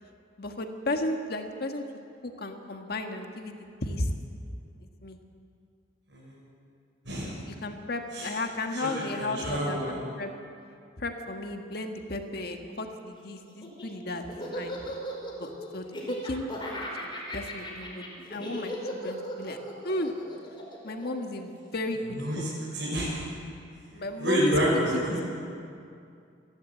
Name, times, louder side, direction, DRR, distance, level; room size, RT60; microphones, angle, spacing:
voice 1, 0.4-1.8 2.2-4.1 5.0-5.2 7.5-10.3 11.0-14.3 14.5-14.8 15.4-16.5 17.0-17.1 17.3-18.7 19.0-19.6 19.8-20.1 20.8-22.4 23.9-24.5 24.9-25.2, left 2 dB, 55° left, 4 dB, 1.7 m, -34 dB
voice 2, 9.2-9.9 22.1-22.5 22.7-23.2 23.9-25.2, equal, 75° right, -6 dB, 5.9 m, -28 dB
Laughter, 13.5-21.9, equal, 25° left, 4.5 m, -37 dB
28.5 x 12.0 x 8.4 m, 2.4 s
head